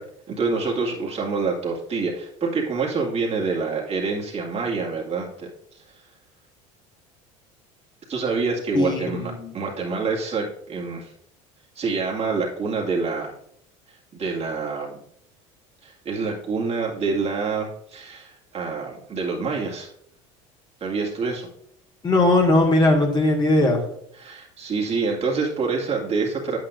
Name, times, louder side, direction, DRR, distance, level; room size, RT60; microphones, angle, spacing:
voice 1, 0.3-5.8 8.1-9.2 9.5-11.1 11.8-13.3 13.9-15.0 15.8-19.9 20.8-21.5 24.2-26.6, right 4 dB, 40° right, -2 dB, 2.1 m, -26 dB
voice 2, 8.7-9.5 22.0-23.8, left 2 dB, 25° left, 1 dB, 1.9 m, -19 dB
8.6 x 8.4 x 2.6 m, 0.69 s
hypercardioid pair, 80°, 17 cm